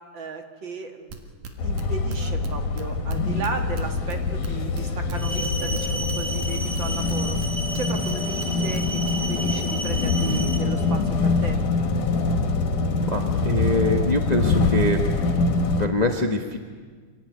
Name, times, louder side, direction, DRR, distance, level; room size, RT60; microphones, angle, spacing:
voice 1, 0.1-7.4 7.7-8.8 9.1-11.6, right 4 dB, 45° right, 5 dB, 2.1 m, -35 dB
sound 1, 1.1-6.8 7.1-8.5 8.7-9.1, right 5 dB, 70° right, 3.2 m, -37 dB
sound 2, 1.6-15.9, left 3 dB, 85° left, 3.3 m, -24 dB
sound 3, 5.1-10.6, right 1 dB, ahead, 1.6 m, -33 dB
voice 2, 13.1-15.0 15.8-16.6, left 2 dB, 65° left, 3 dB, 0.4 m, -24 dB
26.5 x 16.5 x 9.4 m, 1.5 s
omnidirectional pair, 3.5 m